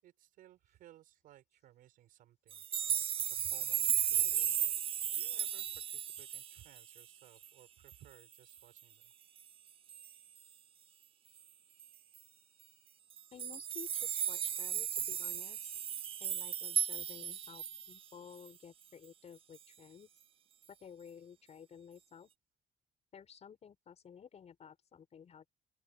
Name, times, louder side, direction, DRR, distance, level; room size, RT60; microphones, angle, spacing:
voice 1, 0.0-2.6 3.3-4.6 5.1-9.1, right 13 dB, 80° right, 6.3 m, -60 dB
sound 1, 2.5-7.0 7.4-7.5 7.9-8.0 8.3-8.8 9.9-10.1 11.8-11.9 12.2-12.3 13.1-18.0 18.5-18.6, right 9 dB, 40° right, 0.3 m, -35 dB
voice 2, 13.3-15.7 16.2-20.1 20.8-22.3 23.1-25.5, left 7 dB, 50° left, 5.2 m, -54 dB
open air
cardioid pair, 85°, 14 cm